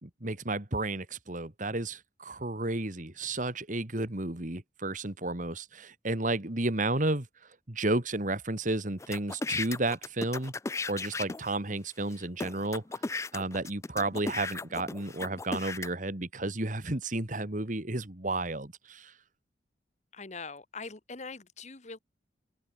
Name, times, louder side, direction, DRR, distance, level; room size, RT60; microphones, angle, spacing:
voice 1, 0.0-7.3 7.7-10.5 10.9-12.8 13.3-19.1, right 2 dB, 45° right, 2.1 m, -32 dB
sound 1, 9.0-11.6 12.1-12.2 12.4-15.9, left 3 dB, 15° left, 0.4 m, -35 dB
voice 2, 20.1-22.0, left 4 dB, 40° left, 1.5 m, -42 dB
head